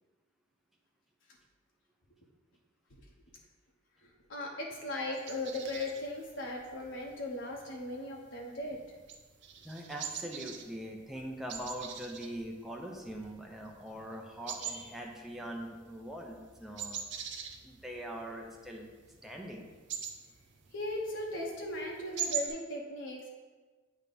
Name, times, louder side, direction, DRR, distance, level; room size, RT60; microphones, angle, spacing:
voice 1, 4.0-8.8 20.7-23.3, left 1 dB, 70° left, -1 dB, 0.9 m, -38 dB
sound 1, 5.1-22.5, right 7 dB, 65° right, 0.6 m, -44 dB
voice 2, 9.6-17.0 17.6-18.9 19.2-19.6, equal, ahead, -1 dB, 0.6 m, -42 dB
8.2 x 3.0 x 5.3 m, 1.3 s
head